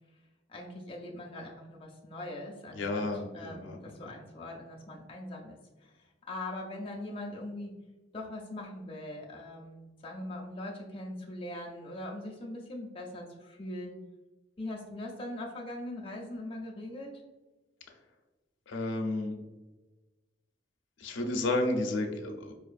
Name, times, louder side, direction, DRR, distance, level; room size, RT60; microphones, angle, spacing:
voice 1, 0.5-3.0 3.3-7.8 8.1-14.0 14.6-17.1, left 1 dB, 30° left, -1 dB, 0.5 m, -41 dB
voice 2, 2.8-3.8 18.7-19.4 21.0-22.5, left 2 dB, 90° left, 3 dB, 0.5 m, -31 dB
4.5 x 2.4 x 2.4 m, 1.2 s
head